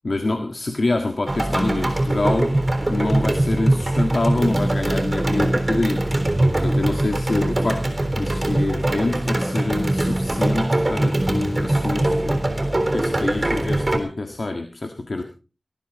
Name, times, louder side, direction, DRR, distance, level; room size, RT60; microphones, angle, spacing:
voice 1, 0.0-2.5 2.9-6.0 6.5-12.4 12.9-15.2, left 2 dB, 65° left, 5 dB, 1.7 m, -26 dB
sound 1, 1.3-14.0, right 1 dB, 35° right, 3.7 m, -22 dB
19.0 x 13.0 x 4.1 m, 0.33 s
wide cardioid pair, 60°, 0 cm